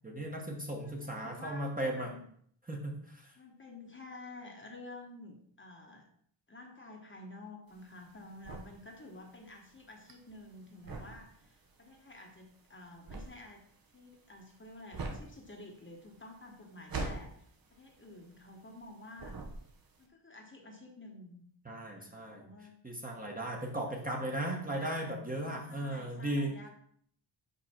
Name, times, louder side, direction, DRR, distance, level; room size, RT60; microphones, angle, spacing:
voice 1, 0.0-2.1 2.7-3.3 21.6-22.5 22.8-26.5, right 1 dB, 20° right, 0 dB, 1.2 m, -36 dB
voice 2, 0.8-2.2 3.4-6.1 6.5-13.6 13.9-17.4 17.7-19.4 20.0-21.4 21.9-22.8 24.3-25.1 25.7-26.7, left 2 dB, 25° left, 1 dB, 1.2 m, -50 dB
sound 1, 7.7-18.9 19.2-20.0, right 3 dB, 45° right, 1.1 m, -43 dB
5.5 x 5.1 x 4.3 m, 0.64 s
wide cardioid pair, 100°, 47 cm